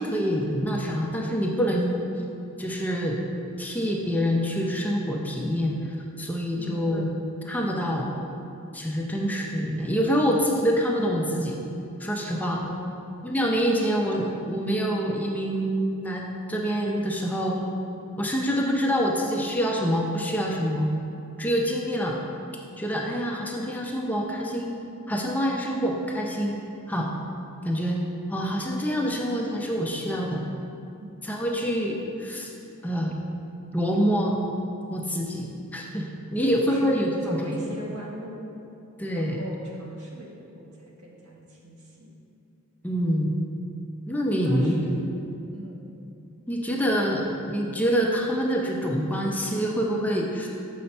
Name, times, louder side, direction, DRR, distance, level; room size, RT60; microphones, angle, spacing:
voice 1, 0.0-1.9 2.6-3.2 3.6-7.1 7.4-8.1 8.7-11.6 12.0-12.6 13.2-17.6 18.2-20.9 21.4-22.2 22.8-24.7 25.1-26.6 26.9-27.1 27.6-28.0 28.3-30.4 31.2-32.5 32.8-33.2 33.7-34.4 34.9-37.4 39.0-39.4 42.8-43.3 44.1-44.9 46.5-50.5, equal, 5° left, -1 dB, 0.5 m, -26 dB
voice 2, 6.6-7.2 12.6-13.1 13.8-14.2 14.7-14.9 31.0-31.1 36.4-37.0 37.3-38.4 39.0-42.1 44.3-45.0 45.5-46.0 46.7-46.8, equal, 75° right, -3 dB, 1.3 m, -40 dB
6.8 x 5.6 x 4.3 m, 2.6 s
head